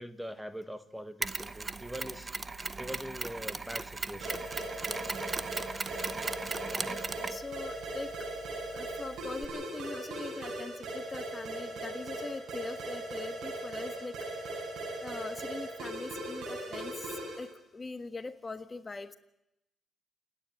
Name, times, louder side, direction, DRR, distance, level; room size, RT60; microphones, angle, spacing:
voice 1, 0.0-2.3 2.8-4.5, equal, 5° right, 10 dB, 1.4 m, -42 dB
Mechanisms, 1.2-9.5, right 3 dB, 25° right, 1.0 m, -38 dB
sound 1, 4.2-17.5, right 2 dB, 75° right, 8.0 m, -39 dB
voice 2, 7.2-8.3 8.7-14.1 15.0-19.2, left 3 dB, 25° left, 10 dB, 1.5 m, -42 dB
28.5 x 10.5 x 9.5 m, 0.83 s
cardioid pair, 90°, 0 cm